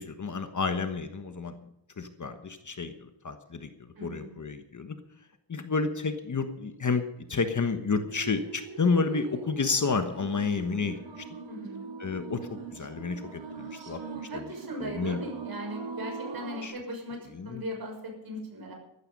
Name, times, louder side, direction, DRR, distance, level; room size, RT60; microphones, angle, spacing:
voice 1, 0.0-1.6 2.0-3.7 4.0-5.0 5.5-11.2 12.0-14.0 14.3-14.4 14.8-15.2 16.6-16.7 17.3-17.6, left 4 dB, 40° left, 8 dB, 1.3 m, -30 dB
voice 2, 4.0-4.4 11.5-11.9 14.3-17.2 17.4-18.7, equal, 50° right, 1 dB, 6.4 m, -38 dB
sound 1, 8.2-16.7, right 5 dB, 70° right, 3.2 m, -41 dB
14.0 x 14.0 x 5.4 m, 0.84 s
wide cardioid pair, 135°, 46 cm